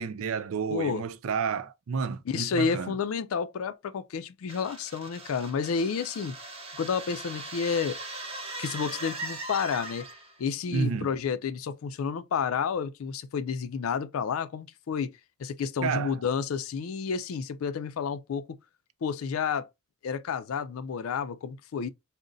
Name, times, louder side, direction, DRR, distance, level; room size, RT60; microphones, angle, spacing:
voice 1, 0.0-3.0 10.7-11.1 15.8-16.2, right 5 dB, 80° right, 0.4 m, -30 dB
voice 2, 0.7-1.0 2.3-6.4 6.7-8.0 8.6-10.1 10.4-15.1 15.4-18.6 19.0-19.7 20.0-21.9, left 6 dB, 75° left, 0.4 m, -30 dB
sound 1, 4.5-10.4, right 2 dB, 30° right, 0.8 m, -40 dB
3.8 x 2.1 x 3.8 m
head